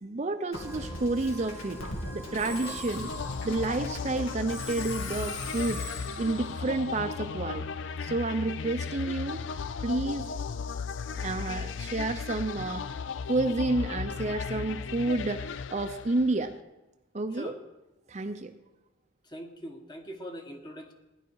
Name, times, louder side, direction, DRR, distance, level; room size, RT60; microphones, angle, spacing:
voice 1, 0.0-1.8 2.1-3.1 3.4-5.8 6.2-7.7 8.0-9.4 9.8-10.3 11.2-12.8 13.3-16.5 17.1-17.5 18.1-18.5, right 2 dB, 35° right, 7 dB, 0.6 m, -30 dB
Musical instrument, 0.5-7.9, left 1 dB, 80° left, 2.3 m, -40 dB
voice 2, 2.4-2.8 17.3-17.6 19.2-20.9, equal, 20° left, 3 dB, 1.3 m, -42 dB
sound 1, 2.9-16.5, left 5 dB, 60° left, 0.4 m, -36 dB
16.5 x 10.5 x 4.7 m, 1.0 s
head